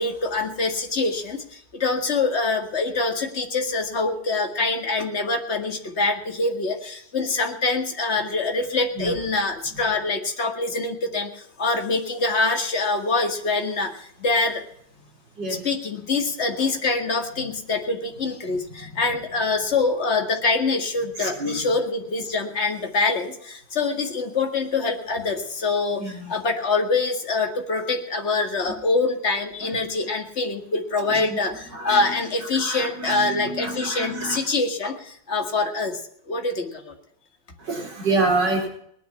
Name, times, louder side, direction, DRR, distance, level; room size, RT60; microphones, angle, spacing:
voice 1, 0.0-14.6 15.5-36.0 36.3-36.9, left 3 dB, 35° left, 4 dB, 2.2 m, -25 dB
voice 2, 21.2-21.7 26.0-26.3 29.6-29.8 31.1-31.4 31.7-34.4 37.6-38.7, right 2 dB, 65° right, 1 dB, 4.7 m, -28 dB
19.5 x 10.5 x 5.7 m, 0.66 s
omnidirectional pair, 2.0 m